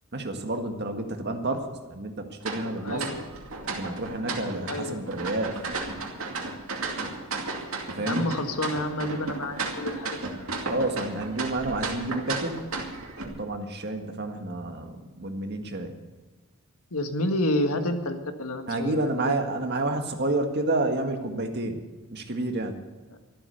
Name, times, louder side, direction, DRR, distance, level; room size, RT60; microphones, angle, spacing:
voice 1, 0.1-3.0 3.7-5.5 8.0-8.3 10.7-12.6 13.2-15.9 18.7-21.8 22.1-22.8, right 2 dB, 50° right, 5 dB, 1.8 m, -29 dB
sound 1, 2.4-13.2, right 3 dB, 80° right, 2.4 m, -34 dB
voice 2, 2.8-3.2 4.6-5.1 8.0-10.2 16.9-19.3, left 1 dB, 85° left, 6 dB, 1.7 m, -29 dB
13.5 x 12.5 x 6.7 m, 1.2 s
head